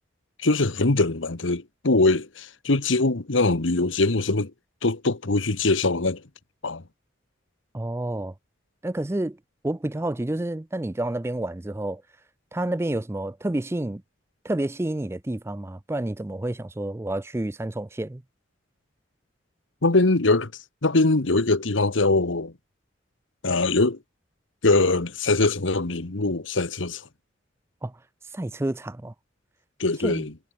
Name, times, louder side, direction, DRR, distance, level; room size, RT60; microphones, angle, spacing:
voice 1, 0.4-4.5 4.8-6.2 6.6-6.8 19.8-20.5 20.8-22.5 23.4-24.0 24.6-27.1 29.8-30.3, left 2 dB, 80° left, 1.4 m, -22 dB
voice 2, 7.7-8.3 8.8-9.4 9.6-12.0 12.5-14.0 14.4-18.2 27.8-28.0 28.3-29.1 30.0-30.3, right 1 dB, 15° right, 0.4 m, -29 dB
head